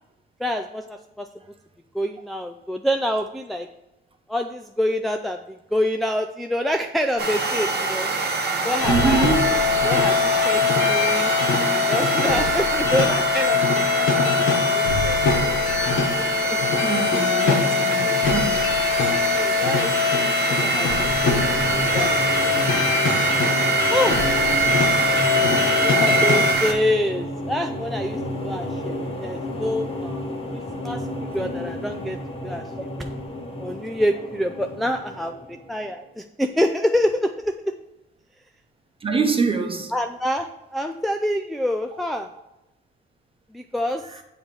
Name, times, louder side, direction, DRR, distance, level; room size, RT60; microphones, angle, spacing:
voice 1, 0.4-1.3 1.9-3.7 4.3-5.4 5.7-8.1 8.6-9.3 9.8-11.3 11.7-15.2 16.2-16.6 19.4-22.1 23.9-24.2 25.7-30.2 30.5-31.0 31.3-32.2 32.4-32.6 33.0-33.1 33.6-35.3 35.7-37.7 39.9-42.3 43.5-44.0, equal, ahead, 0.3 m, -26 dB
sound 1, 7.2-26.7, right 4 dB, 55° right, 1.2 m, -24 dB
sound 2, 8.8-26.5, left 6 dB, 80° left, 1.4 m, -22 dB
voice 2, 8.9-9.4 16.8-18.6 39.0-39.9, right 4 dB, 30° right, 1.0 m, -24 dB
sound 3, 20.6-35.9, left 1 dB, 30° left, 1.5 m, -32 dB
7.2 x 3.2 x 6.0 m
cardioid pair, 90°, 20 cm